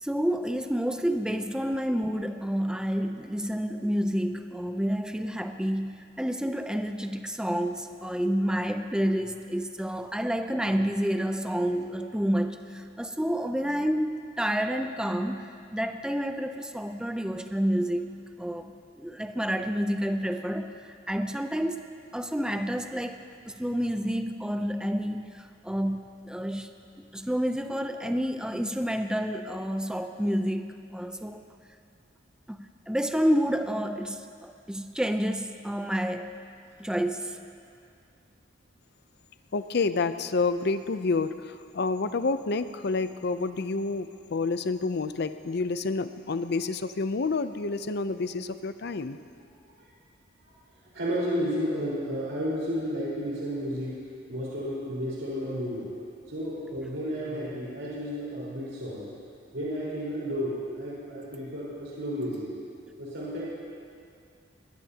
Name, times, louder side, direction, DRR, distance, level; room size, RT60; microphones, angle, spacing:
voice 1, 0.0-5.9 6.2-18.1 18.4-20.7 21.1-21.8 22.1-23.2 23.6-25.3 25.6-26.7 27.1-31.4 32.5-32.6 32.9-36.3 36.8-37.4, equal, 5° right, 7 dB, 0.5 m, -29 dB
voice 2, 39.5-49.2, left 3 dB, 60° left, 11 dB, 0.6 m, -29 dB
voice 3, 50.9-54.0 54.3-55.9 56.3-59.1 59.5-62.5 63.0-63.5, equal, 85° right, -8 dB, 4.5 m, -32 dB
21.0 x 20.5 x 2.9 m, 2.4 s
head